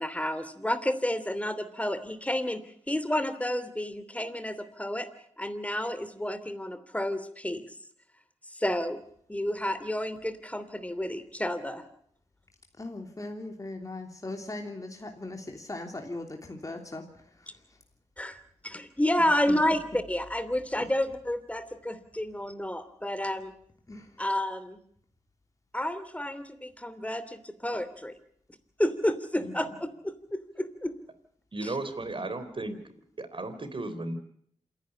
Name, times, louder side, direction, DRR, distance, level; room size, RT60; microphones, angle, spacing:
voice 1, 0.0-2.6 2.9-5.1 5.4-7.7 8.5-9.0 9.3-11.8 18.2-18.4 18.6-23.5 24.2-24.8 25.7-28.1 28.8-29.7 30.0-30.9, left 1 dB, 10° left, 12 dB, 3.0 m, -30 dB
voice 2, 12.8-17.8 19.2-19.6 20.7-20.9 23.9-24.2 29.4-29.8, left 2 dB, 25° left, 3 dB, 3.1 m, -40 dB
voice 3, 31.5-32.8 33.2-34.1, right 2 dB, 45° right, 10 dB, 3.7 m, -34 dB
27.0 x 11.0 x 9.9 m, 0.68 s
cardioid pair, 45°, 12 cm